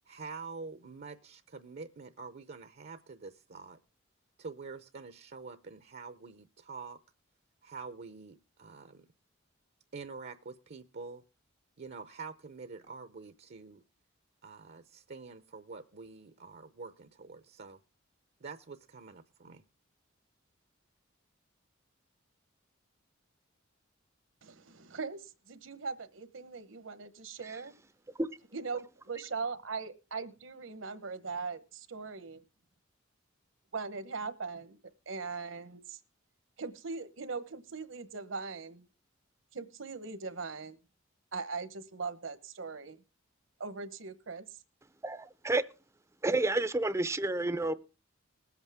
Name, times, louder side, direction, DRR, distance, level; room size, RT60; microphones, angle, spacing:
voice 1, 0.1-3.8 4.4-7.0 7.6-9.1 9.9-11.2 11.8-13.8 14.4-17.8 18.4-19.6, right 4 dB, 55° right, 10 dB, 0.7 m, -46 dB
voice 2, 24.4-27.7 28.5-32.4 33.7-34.8 35.1-36.0 36.6-38.8 39.5-40.8 41.3-43.0 43.6-44.4, right 4 dB, 75° right, 11 dB, 1.1 m, -40 dB
voice 3, 45.0-45.6 46.2-47.7, right 2 dB, 15° right, 14 dB, 0.5 m, -30 dB
20.5 x 8.1 x 3.5 m, 0.31 s
head